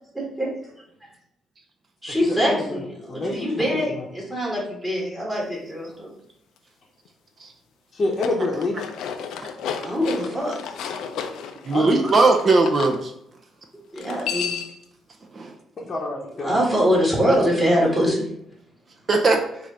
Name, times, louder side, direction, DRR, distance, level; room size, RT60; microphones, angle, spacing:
voice 1, 0.1-0.5 2.0-6.1 9.7-10.6 13.9-14.5 16.4-18.2, equal, 15° right, -4 dB, 1.8 m, -23 dB
voice 2, 2.1-2.8 3.1-4.1 7.9-8.8 11.7-12.0 15.8-16.6, left 2 dB, 40° left, -4 dB, 0.8 m, -27 dB
sound 1, 8.0-12.9 13.9-14.8, left 7 dB, 85° left, 0.4 m, -32 dB
voice 3, 11.7-13.1 15.3-15.5 17.3-17.4 19.1-19.4, right 3 dB, 40° right, 4 dB, 0.6 m, -19 dB
4.8 x 2.5 x 4.2 m, 0.73 s
cardioid pair, 90°, 0 cm